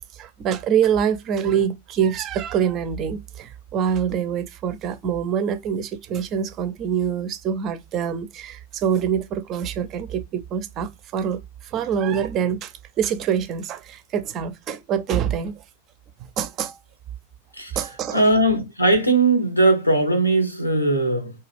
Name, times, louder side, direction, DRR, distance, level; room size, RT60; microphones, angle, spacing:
voice 1, 0.1-15.5 16.4-16.8 17.8-18.2, right 8 dB, 35° right, 0.4 m, -25 dB
voice 2, 18.1-21.3, right 2 dB, 85° left, 0.8 m, -19 dB
2.3 x 2.3 x 3.3 m
figure-of-eight pair, 90°, 0 cm